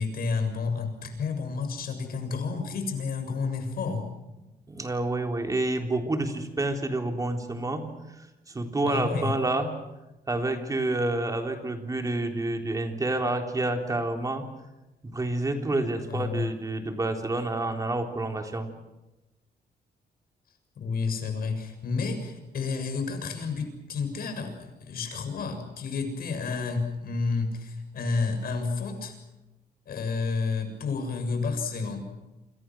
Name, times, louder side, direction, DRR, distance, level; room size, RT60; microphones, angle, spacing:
voice 1, 0.0-4.1 8.8-9.3 16.1-16.5 20.8-29.2 29.9-32.1, left 4 dB, 65° left, 6 dB, 7.0 m, -30 dB
voice 2, 4.7-7.9 8.5-9.7 10.3-14.5 15.0-18.7, right 2 dB, 20° right, 4 dB, 3.7 m, -28 dB
29.0 x 27.0 x 6.3 m, 1.0 s
cardioid pair, 145°, 17 cm